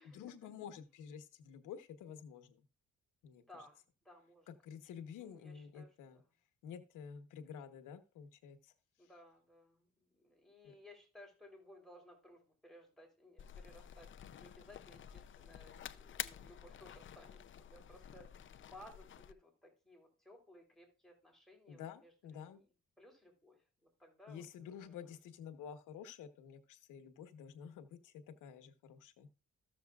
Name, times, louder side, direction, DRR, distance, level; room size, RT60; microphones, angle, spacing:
voice 1, 0.1-2.6 3.2-3.6 4.5-6.2 6.6-8.7 10.6-10.7 21.7-22.6 24.3-29.3, left 8 dB, 90° left, 9 dB, 1.2 m, -50 dB
voice 2, 3.5-4.5 5.2-6.2 9.0-22.6 23.0-25.0, left 1 dB, ahead, 2 dB, 3.5 m, -60 dB
sound 1, 13.4-19.3, left 9 dB, 40° left, 0.5 m, -49 dB
14.0 x 7.0 x 2.4 m, 0.33 s
cardioid pair, 90°, 30 cm